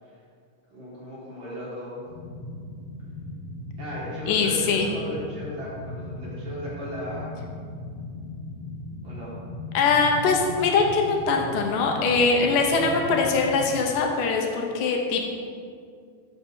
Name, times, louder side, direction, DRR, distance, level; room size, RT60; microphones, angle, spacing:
voice 1, 0.7-2.0 3.8-7.4 9.0-9.3, equal, 45° right, -7 dB, 1.9 m, -36 dB
sound 1, 2.1-13.8, left 2 dB, 30° left, 2.2 m, -38 dB
voice 2, 4.3-4.9 9.7-15.3, left 4 dB, 80° left, 1 dB, 2.4 m, -22 dB
6.4 x 5.5 x 6.3 m, 2.2 s
omnidirectional pair, 3.8 m